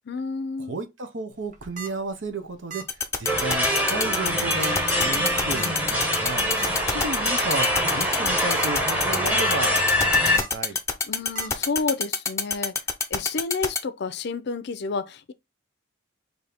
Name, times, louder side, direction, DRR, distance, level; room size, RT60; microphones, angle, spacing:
voice 1, 0.1-0.8 11.1-12.8 13.1-15.3, left 4 dB, 60° left, 0.5 m, -30 dB
voice 2, 0.7-10.8, right 2 dB, 75° right, 0.9 m, -33 dB
sound 1, 1.4-1.9 2.7-3.0 3.2-3.3 3.6-3.8 4.6-4.9 5.6-5.7 6.6-6.7 7.2-7.3 7.5-7.6 8.3-8.6 9.1-9.5 10.3-10.5 11.3-11.5, right 6 dB, 40° right, 0.9 m, -36 dB
sound 2, 2.9-13.8, left 5 dB, 15° left, 0.6 m, -24 dB
sound 3, 3.3-10.4, left 1 dB, 10° right, 1.0 m, -24 dB
4.2 x 2.8 x 3.4 m
head